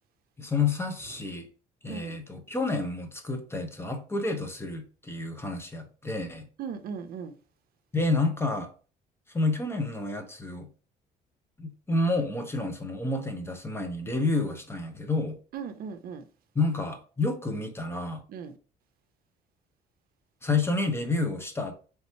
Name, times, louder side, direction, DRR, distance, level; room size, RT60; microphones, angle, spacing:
voice 1, 0.4-1.5 1.8-6.5 7.9-8.7 9.3-10.7 11.6-15.4 16.5-18.2 20.4-21.7, left 3 dB, 15° left, 0.8 m, -29 dB
voice 2, 6.6-7.3 15.5-16.2 18.3-18.6, right 6 dB, 60° right, 0.6 m, -37 dB
3.4 x 2.9 x 4.3 m
cardioid pair, 110°, 17 cm